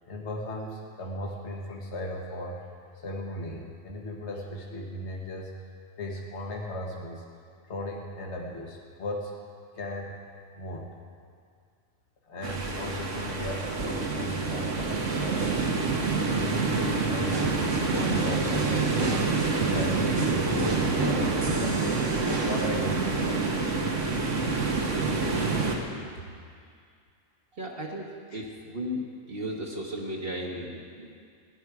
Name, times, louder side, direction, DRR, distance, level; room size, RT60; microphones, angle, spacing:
voice 1, 0.0-2.6 2.9-5.5 6.0-7.2 7.6-9.4 9.7-10.1 10.5-10.9 12.3-15.8 16.3-19.1 19.5-21.9 22.4-23.5 26.2-26.3 28.3-28.5, left 1 dB, 65° left, 0 dB, 1.5 m, -37 dB
sound 1, 12.4-25.8, right 4 dB, 80° right, 1.6 m, -27 dB
sound 2, 17.3-22.7, right 2 dB, 25° right, 0.8 m, -35 dB
voice 2, 27.5-29.0 29.3-31.3, equal, 50° right, -3 dB, 1.4 m, -35 dB
16.5 x 10.5 x 4.8 m, 2.2 s
omnidirectional pair, 1.3 m